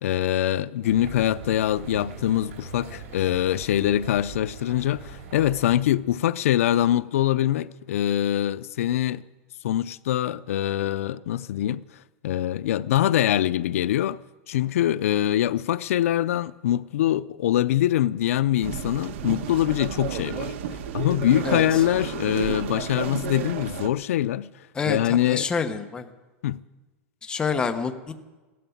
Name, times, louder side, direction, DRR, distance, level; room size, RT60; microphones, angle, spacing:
voice 1, 0.0-9.2 9.6-11.8 12.2-14.2 14.5-20.5 20.9-25.5 26.4-26.6, left 12 dB, 80° left, 0.5 m, -24 dB
sound 1, 0.8-5.8, right 4 dB, 85° right, 4.0 m, -41 dB
sound 2, 18.6-23.9, right 9 dB, 60° right, 1.3 m, -32 dB
voice 2, 25.2-26.1 27.2-28.1, left 5 dB, 10° left, 0.9 m, -27 dB
16.0 x 12.5 x 7.1 m
supercardioid pair, 165°, 7 cm